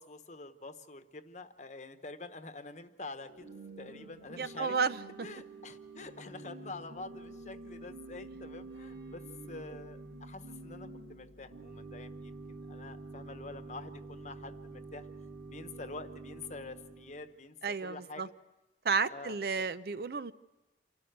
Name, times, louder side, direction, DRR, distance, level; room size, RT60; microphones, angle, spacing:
voice 1, 0.0-3.5 3.8-4.8 5.2-9.2 9.5-15.1 15.5-17.6 17.8-18.3 19.1-19.6, left 3 dB, 40° left, 9 dB, 1.0 m, -46 dB
Organ / Church bell, 3.2-17.3, right 2 dB, 80° right, 2.5 m, -48 dB
voice 2, 4.4-5.3 17.6-18.3 18.8-20.3, right 5 dB, 55° right, 14 dB, 0.6 m, -32 dB
27.5 x 12.5 x 8.0 m, 1.1 s
head